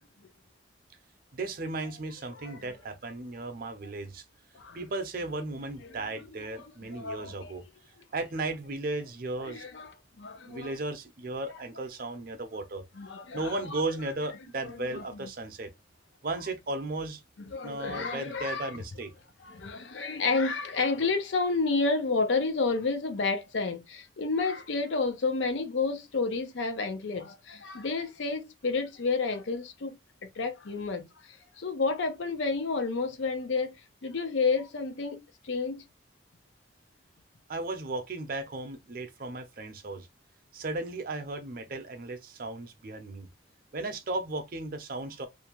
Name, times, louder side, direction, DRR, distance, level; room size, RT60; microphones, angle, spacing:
voice 1, 1.3-4.2 4.7-7.6 8.1-9.6 10.5-12.8 13.3-15.7 16.2-17.2 17.6-19.1 37.5-40.1 40.5-43.3 43.7-45.3, right 2 dB, 50° right, 0.5 m, -35 dB
voice 2, 2.3-2.8 4.5-4.8 5.9-6.1 6.3-7.5 9.4-10.7 12.9-13.6 14.6-15.3 17.5-18.7 19.4-35.9, left 4 dB, 75° left, 0.6 m, -31 dB
2.6 x 2.2 x 2.9 m
head